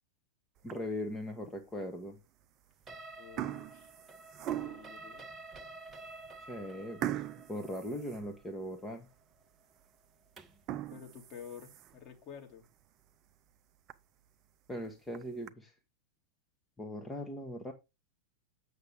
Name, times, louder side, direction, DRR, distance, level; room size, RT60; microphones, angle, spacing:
voice 1, 0.6-2.2 6.5-7.2 7.5-9.1 14.7-15.7 16.8-17.7, left 1 dB, 10° left, 1.2 m, -39 dB
sound 1, 0.6-1.1 1.7-1.8 2.6-2.9 3.1-5.0 5.6-5.7 6.1-6.2 7.0-8.8 9.2-9.3 9.8-9.9 10.5-12.1 12.6-12.7 13.1-13.2 13.5-13.6 13.9-14.0 14.9-15.5, right 12 dB, 35° right, 0.6 m, -40 dB
sound 2, 2.9-10.7, right 3 dB, 20° right, 1.0 m, -51 dB
voice 2, 3.2-3.9 4.4-5.3 10.9-12.7, left 7 dB, 35° left, 2.2 m, -50 dB
8.1 x 6.6 x 3.4 m
figure-of-eight pair, 90°, 0 cm